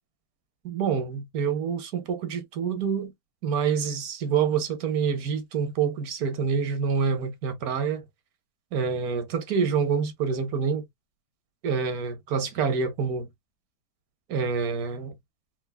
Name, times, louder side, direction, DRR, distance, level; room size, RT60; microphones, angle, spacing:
voice 1, 0.6-3.1 3.4-8.0 8.7-10.8 11.6-13.3 14.3-15.1, right 6 dB, 70° right, 1.2 m, -27 dB
4.5 x 2.3 x 2.2 m
omnidirectional pair, 1.7 m